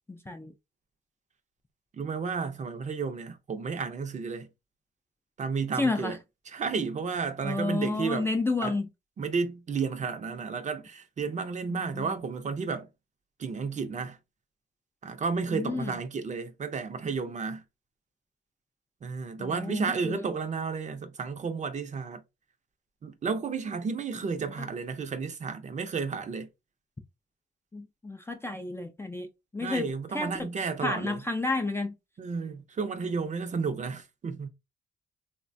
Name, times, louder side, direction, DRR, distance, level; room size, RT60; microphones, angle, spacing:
voice 1, 0.1-0.5 5.8-6.2 7.4-8.9 11.7-12.2 15.5-15.9 19.4-20.2 24.4-24.7 27.7-29.3 29.5-30.5 30.8-31.9, left 3 dB, 10° left, 0.3 m, -31 dB
voice 2, 2.0-4.5 5.4-6.2 6.5-8.3 8.6-8.7 9.2-12.9 13.4-14.2 15.0-17.6 19.0-22.2 23.0-26.5 29.6-31.2 32.2-34.5, right 5 dB, 35° right, 0.5 m, -32 dB
3.1 x 2.1 x 2.5 m
cardioid pair, 90°, 20 cm